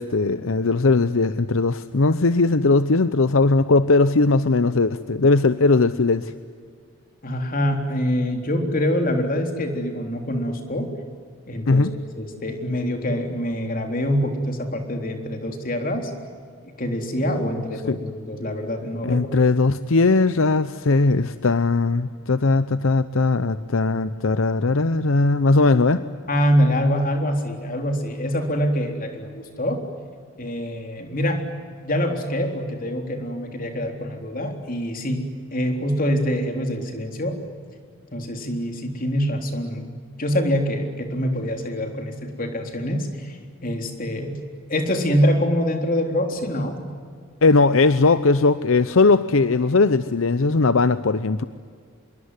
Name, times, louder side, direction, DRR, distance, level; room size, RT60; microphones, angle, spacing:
voice 1, 0.0-6.3 11.7-11.9 17.9-18.0 19.0-26.0 47.4-51.4, left 3 dB, 70° left, 13 dB, 0.7 m, -19 dB
voice 2, 7.2-10.9 11.5-11.9 12.2-16.1 16.8-19.3 26.3-29.8 30.4-31.4 31.8-37.4 38.1-39.9 40.2-44.4 44.7-46.8, equal, 40° left, 4 dB, 3.7 m, -25 dB
26.0 x 23.0 x 9.8 m, 2.1 s
head